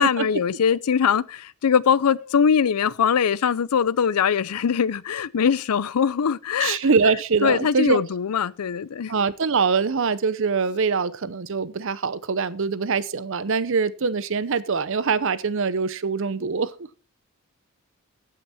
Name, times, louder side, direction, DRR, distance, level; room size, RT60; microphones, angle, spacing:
voice 1, 0.0-6.8 7.4-9.1, left 7 dB, 90° left, 0.5 m, -22 dB
voice 2, 6.6-8.0 9.1-16.7, right 5 dB, 60° right, 0.7 m, -23 dB
15.5 x 5.8 x 4.3 m
head